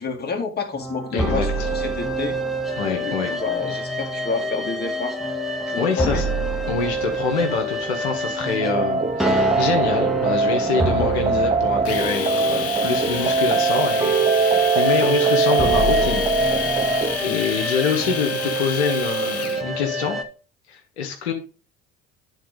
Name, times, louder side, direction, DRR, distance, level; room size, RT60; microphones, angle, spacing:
voice 1, 0.0-2.4 3.0-5.2 5.7-6.3, left 4 dB, 30° left, 4 dB, 2.2 m, -29 dB
sound 1, 0.7-20.2, right 1 dB, ahead, 1.6 m, -27 dB
voice 2, 1.1-1.5 2.7-3.3 5.8-6.2 6.7-16.8 17.2-20.2 20.7-21.3, left 6 dB, 80° left, 2 dB, 1.4 m, -25 dB
sound 2, 8.6-17.2, right 4 dB, 20° right, 0.6 m, -21 dB
Domestic sounds home sounds, 11.9-19.6, left 8 dB, 50° left, 1.4 m, -31 dB
9.3 x 4.1 x 5.1 m, 0.35 s
hypercardioid pair, 65°, 32 cm